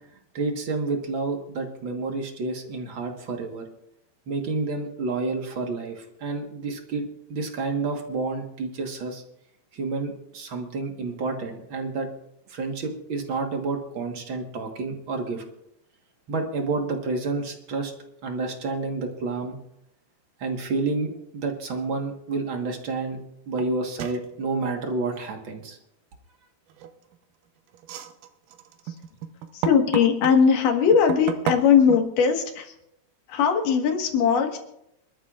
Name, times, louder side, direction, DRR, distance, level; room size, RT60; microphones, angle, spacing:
voice 1, 0.3-3.6 4.3-9.2 9.7-12.1 12.5-15.4 16.3-17.9 18.2-19.6 20.4-23.2 23.5-25.8, right 3 dB, 50° right, 3 dB, 1.8 m, -29 dB
sound 1, 23.6-23.7 24.0-24.3 26.7-27.2 27.7-30.4 30.9-32.0, right 9 dB, 85° right, 2.5 m, -32 dB
voice 2, 29.5-32.7 33.3-34.6, left 6 dB, 85° left, 4 dB, 3.2 m, -20 dB
26.5 x 13.0 x 2.5 m, 0.80 s
omnidirectional pair, 3.6 m